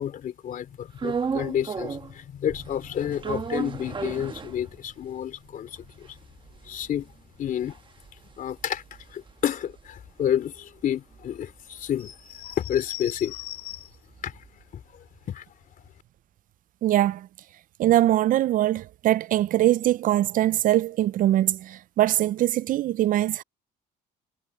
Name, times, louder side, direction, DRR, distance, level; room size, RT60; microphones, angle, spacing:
voice 1, 0.0-6.2 6.6-7.1 7.4-7.8 8.4-8.8 9.1-13.9 14.2-14.4 14.7-15.4, left 10 dB, 55° left, 3.0 m, -30 dB
sound 1, 1.0-2.2 2.5-5.1 5.5-5.6 5.7-10.2 10.6-14.6, right 6 dB, 30° right, 1.2 m, -35 dB
voice 2, 16.8-17.3 17.8-23.4, right 13 dB, 55° right, 0.4 m, -22 dB
cardioid pair, 110°, 17 cm